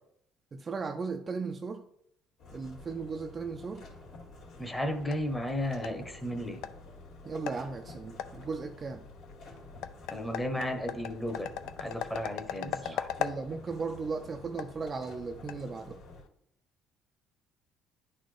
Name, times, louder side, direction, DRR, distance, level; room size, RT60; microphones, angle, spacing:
voice 1, 0.5-1.8 2.5-3.9 7.2-9.1 12.6-16.0, right 4 dB, 30° right, 0.4 m, -37 dB
sound 1, 2.4-16.2, left 2 dB, 65° left, 2.2 m, -50 dB
sound 2, 4.4-16.3, left 10 dB, 80° left, 0.4 m, -41 dB
voice 2, 4.6-6.6 10.1-11.5 11.8-13.1, left 1 dB, 10° left, 0.9 m, -34 dB
10.0 x 4.1 x 3.2 m
cardioid pair, 130°, 0 cm